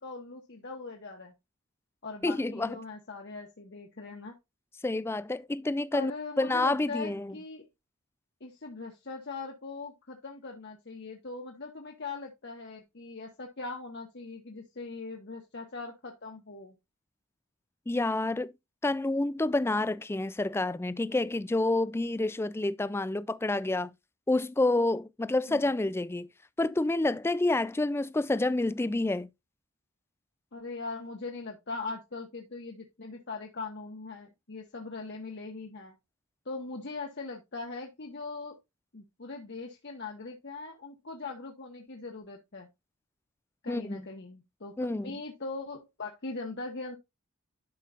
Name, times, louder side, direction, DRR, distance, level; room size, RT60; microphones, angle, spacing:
voice 1, 0.0-1.3 2.0-4.4 5.9-7.7 8.4-16.8 25.5-25.7 30.5-35.9 36.4-38.6 38.9-42.7 43.6-47.0, left 3 dB, 55° left, 1.2 m, -40 dB
voice 2, 2.2-2.8 4.8-6.1 6.4-7.3 17.9-18.5 18.8-23.9 24.3-26.3 26.6-29.3 43.7-44.0 44.8-45.1, left 2 dB, 10° left, 0.3 m, -28 dB
11.5 x 5.4 x 2.5 m
head